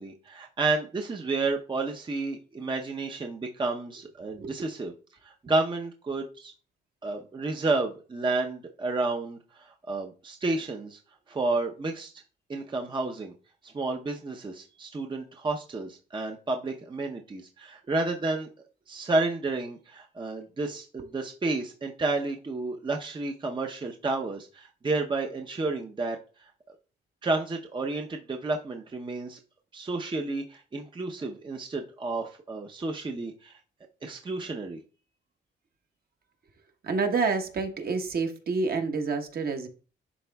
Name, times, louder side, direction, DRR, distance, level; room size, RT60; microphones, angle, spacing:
voice 1, 0.0-4.9 5.2-6.5 7.0-11.0 11.3-12.1 12.5-13.3 13.6-18.5 18.9-26.5 27.2-29.4 29.7-33.6 34.0-34.8, right 3 dB, 25° right, 0.7 m, -31 dB
voice 2, 36.8-39.7, right 4 dB, 50° right, 1.2 m, -28 dB
11.0 x 3.7 x 2.3 m
cardioid pair, 90°, 20 cm